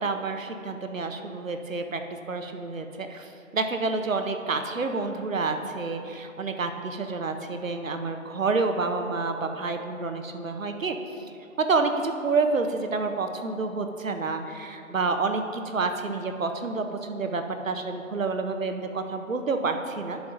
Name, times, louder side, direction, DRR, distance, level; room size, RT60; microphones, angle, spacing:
voice 1, 0.0-2.0 2.3-11.2 11.6-20.2, right 3 dB, 70° right, 6 dB, 0.8 m, -29 dB
11.0 x 7.2 x 2.6 m, 2.6 s
figure-of-eight pair, 175°, 41 cm